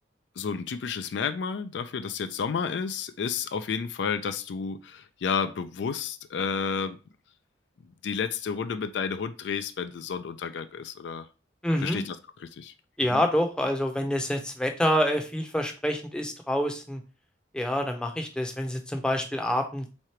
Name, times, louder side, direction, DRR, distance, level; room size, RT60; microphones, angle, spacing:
voice 1, 0.4-7.0 8.0-11.3 11.8-12.7 13.1-13.2, left 6 dB, 65° left, 0.4 m, -31 dB
voice 2, 11.6-12.0 13.0-17.0 17.5-19.9, equal, 5° left, 0.6 m, -27 dB
3.7 x 3.2 x 4.3 m
head